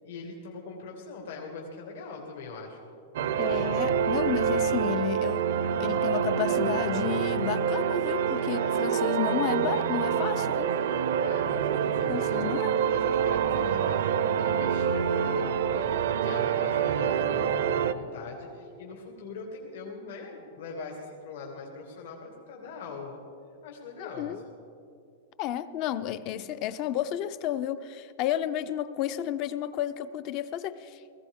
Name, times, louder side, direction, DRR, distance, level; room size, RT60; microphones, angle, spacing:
voice 1, 0.0-2.8 8.5-8.9 11.2-15.9 16.2-23.2 23.6-24.5, left 4 dB, 70° left, -1 dB, 2.0 m, -41 dB
sound 1, 3.1-17.9, right 8 dB, 70° right, 0.6 m, -26 dB
voice 2, 3.4-5.4 5.8-10.7 12.1-12.7 24.0-24.4 25.4-31.0, left 11 dB, 30° left, 14 dB, 0.4 m, -32 dB
19.5 x 15.5 x 3.6 m, 2.5 s
supercardioid pair, 170°, 0 cm